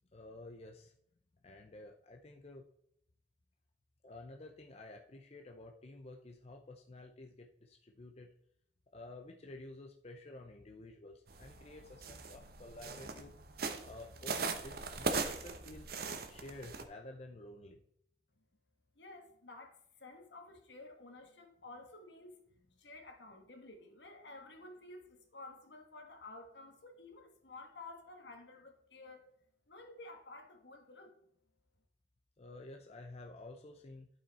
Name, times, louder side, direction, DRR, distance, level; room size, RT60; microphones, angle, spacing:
voice 1, 0.1-0.9 1.4-2.6 4.0-8.3 8.9-13.4 13.8-16.0 16.3-17.8 32.4-34.1, left 2 dB, 35° left, 2 dB, 0.6 m, -51 dB
sound 1, 11.3-16.8, right 4 dB, 55° right, 0.9 m, -40 dB
voice 2, 18.9-22.4 22.8-29.2 29.7-31.1, left 2 dB, 75° left, 4 dB, 1.7 m, -52 dB
12.0 x 5.6 x 4.2 m, 0.71 s
head